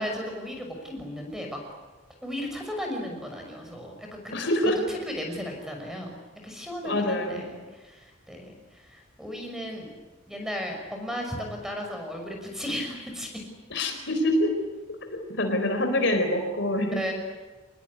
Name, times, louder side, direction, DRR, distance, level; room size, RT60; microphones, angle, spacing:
voice 1, 0.0-1.6 2.2-4.3 4.6-6.1 6.4-9.9 10.3-13.4 16.0-16.3 17.0-17.1, equal, ahead, 2 dB, 6.0 m, -35 dB
voice 2, 4.3-4.7 6.8-7.4 13.7-14.5 15.1-17.0, left 1 dB, 60° left, 6 dB, 4.2 m, -25 dB
26.0 x 20.5 x 9.8 m, 1.3 s
head